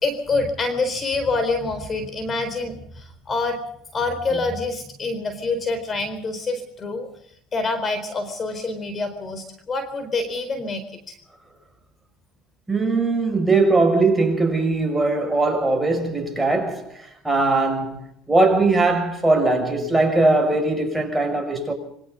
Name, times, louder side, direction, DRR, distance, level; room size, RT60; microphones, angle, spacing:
voice 1, 0.0-3.6 3.9-7.1 7.5-11.1, left 3 dB, 30° left, 4.2 m, -26 dB
voice 2, 12.7-21.7, right 3 dB, 5° right, 6.6 m, -20 dB
27.5 x 23.5 x 4.0 m
supercardioid pair, 105°, 0 cm